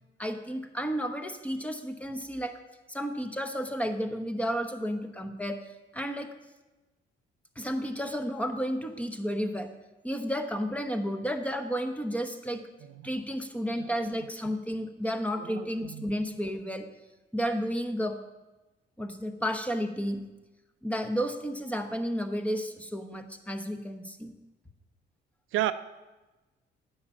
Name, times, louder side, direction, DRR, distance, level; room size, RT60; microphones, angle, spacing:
voice 1, 0.2-2.6 2.9-5.6 5.9-6.3 7.6-9.7 10.0-12.6 13.0-16.9 17.3-18.2 19.0-20.2 20.8-24.3, equal, 5° left, 7 dB, 1.0 m, -32 dB
voice 2, 15.4-16.1 25.5-25.7, right 14 dB, 90° right, 12 dB, 0.5 m, -33 dB
9.6 x 5.6 x 7.1 m, 1.1 s
cardioid pair, 90°, 20 cm